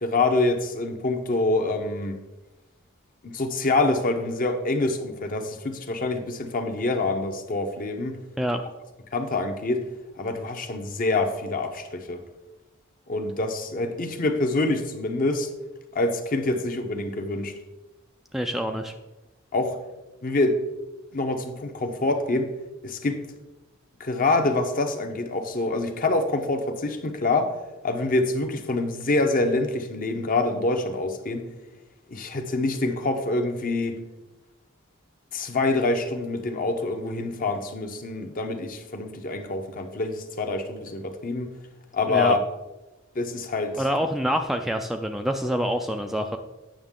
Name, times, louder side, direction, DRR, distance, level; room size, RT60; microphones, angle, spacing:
voice 1, 0.0-2.1 3.2-8.2 9.1-9.8 10.2-12.2 13.1-15.5 15.9-17.6 19.5-19.8 20.2-20.6 21.1-22.5 22.8-23.2 24.0-27.5 27.8-31.5 32.1-34.0 35.3-41.5 41.9-42.4 43.1-43.8, left 2 dB, 45° left, 6 dB, 0.8 m, -26 dB
voice 2, 18.3-18.9 42.1-42.4 43.8-46.4, equal, ahead, 5 dB, 0.3 m, -26 dB
8.8 x 6.3 x 3.7 m, 1.1 s
head